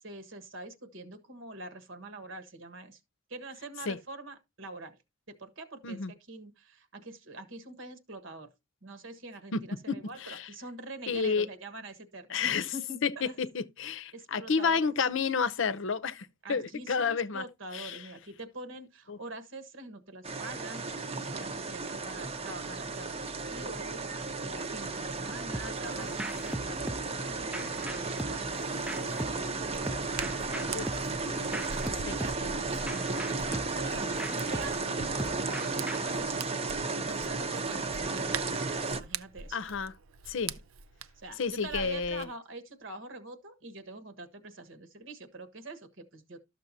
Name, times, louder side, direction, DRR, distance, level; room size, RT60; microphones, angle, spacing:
voice 1, 0.0-3.0 3.3-5.0 5.3-6.0 6.3-8.5 8.8-13.4 14.1-14.8 16.4-20.9 21.3-36.7 37.0-39.6 41.2-46.4, right 2 dB, 65° right, 1.4 m, -45 dB
voice 2, 11.1-11.5 12.3-12.7 13.0-13.1 13.4-17.4 17.7-18.0 19.1-19.2 30.7-31.0 32.1-32.2 39.5-39.9 40.3-40.5 41.4-42.3, left 5 dB, 65° left, 0.7 m, -30 dB
sound 1, 20.2-39.0, right 3 dB, 30° right, 0.8 m, -34 dB
sound 2, 25.5-36.2, right 1 dB, 5° right, 0.4 m, -41 dB
Hands, 28.2-42.3, right 6 dB, 85° right, 0.6 m, -45 dB
13.0 x 6.6 x 2.7 m
head